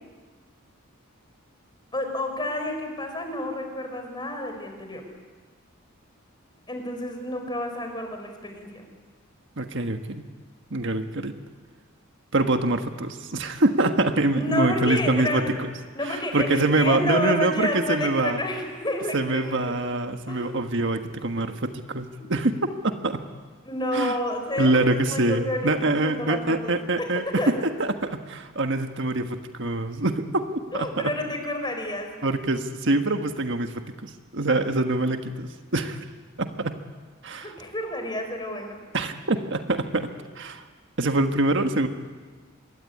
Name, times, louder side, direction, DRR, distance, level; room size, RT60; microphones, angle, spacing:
voice 1, 1.9-5.0 6.7-8.8 14.3-15.5 15.9-19.7 20.3-20.5 22.2-22.3 23.6-27.1 27.4-27.5 30.7-32.1 37.4-38.8, left 1 dB, 20° left, 5 dB, 4.8 m, -30 dB
voice 2, 9.6-10.3 10.7-11.4 12.3-15.7 16.0-18.4 19.1-22.5 22.8-23.2 23.9-24.2 24.6-31.1 32.2-36.0 36.4-36.8 37.2-37.5 38.9-40.6 41.0-41.9, right 2 dB, 60° right, 6 dB, 1.5 m, -25 dB
26.0 x 22.0 x 9.8 m, 1.4 s
head